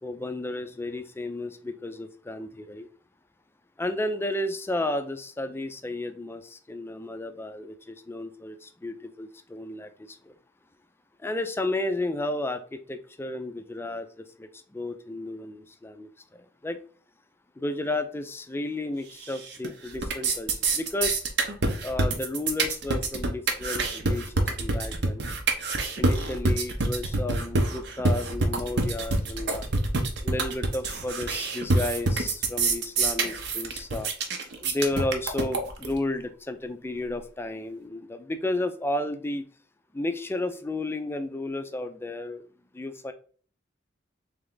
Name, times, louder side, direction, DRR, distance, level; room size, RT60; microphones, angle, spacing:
voice 1, 0.0-2.9 3.8-10.4 11.2-16.8 17.6-21.2 21.8-25.2 26.0-29.7 30.2-34.1 34.6-39.5 39.9-42.5 42.7-43.1, left 2 dB, 10° left, 8 dB, 0.4 m, -33 dB
sound 1, 19.2-19.7 19.9-35.9, right 3 dB, 60° right, 0.7 m, -26 dB
3.5 x 3.3 x 3.8 m, 0.42 s
head